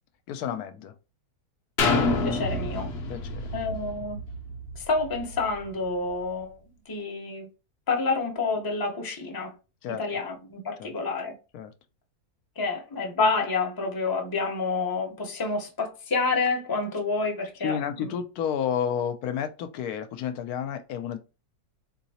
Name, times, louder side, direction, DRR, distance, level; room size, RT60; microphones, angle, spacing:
voice 1, 0.3-0.9 3.1-3.5 9.8-10.0 10.8-10.9 11.5-11.7 17.6-21.2, left 8 dB, 80° left, 1.1 m, -31 dB
sound 1, 1.8-5.6 6.1-6.2, left 3 dB, 60° left, 0.7 m, -28 dB
voice 2, 2.2-2.9 3.5-4.2 4.8-6.6 6.9-7.5 7.9-9.5 10.0-11.3 12.6-18.1, left 3 dB, 20° left, 0.6 m, -28 dB
3.9 x 2.9 x 2.8 m
omnidirectional pair, 1.6 m